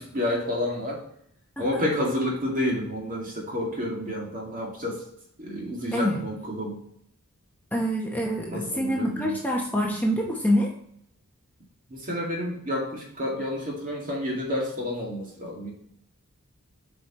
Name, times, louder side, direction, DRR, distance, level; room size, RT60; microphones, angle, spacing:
voice 1, 0.1-1.0 1.6-5.0 5.4-6.8 8.5-9.4 11.9-15.7, left 1 dB, 40° right, -1 dB, 2.1 m, -29 dB
voice 2, 7.7-10.7, equal, 10° left, -1 dB, 0.9 m, -26 dB
7.8 x 5.0 x 3.0 m, 0.70 s
head